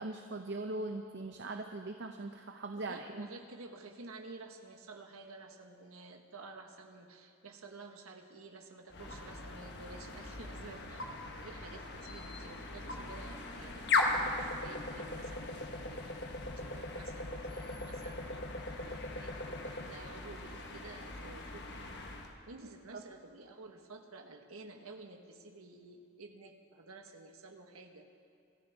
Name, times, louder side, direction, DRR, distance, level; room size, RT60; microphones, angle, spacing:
voice 1, 0.0-3.3 22.9-23.0, right 2 dB, 50° right, 5 dB, 0.7 m, -40 dB
voice 2, 2.8-11.1 11.4-16.1 16.5-21.9 22.5-28.1, right 3 dB, 75° right, 4 dB, 1.4 m, -51 dB
sound 1, 8.9-22.3, left 2 dB, 50° left, 1.4 m, -38 dB
25.5 x 14.0 x 3.6 m, 2.6 s
head